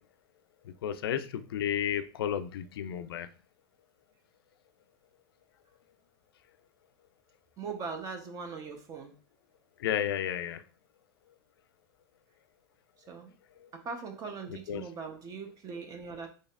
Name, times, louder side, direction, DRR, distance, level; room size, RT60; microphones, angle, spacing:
voice 1, 0.8-3.3 9.8-10.6 14.5-14.8, left 9 dB, 80° left, 0.4 m, -32 dB
voice 2, 7.6-9.2 13.1-13.3 13.7-16.3, right 5 dB, 30° right, 0.9 m, -40 dB
3.9 x 3.2 x 2.5 m
hypercardioid pair, 125°, 12 cm